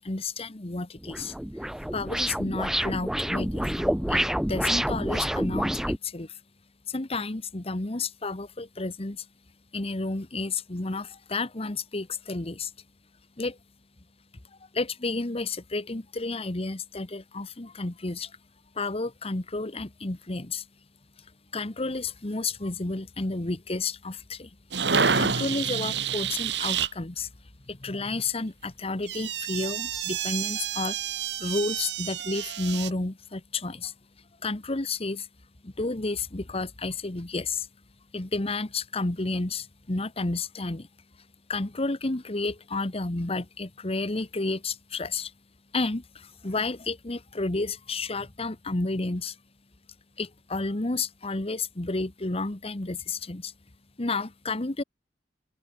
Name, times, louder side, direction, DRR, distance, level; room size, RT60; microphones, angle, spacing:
voice 1, 0.0-1.3 1.9-4.2 4.5-6.3 6.9-9.2 9.7-12.7 13.4-13.6 14.7-18.3 18.8-20.6 21.5-24.5 25.1-27.3 27.7-31.0 31.4-33.9 34.4-35.3 35.6-37.7 38.1-40.9 41.5-45.3 45.7-49.3 50.2-53.5 54.0-54.8, left 3 dB, 35° left, 1.2 m, -31 dB
sound 1, 1.0-6.0, equal, 5° right, 0.3 m, -28 dB
sound 2, 24.7-26.9 29.0-32.9, right 6 dB, 70° right, 2.7 m, -28 dB
open air
head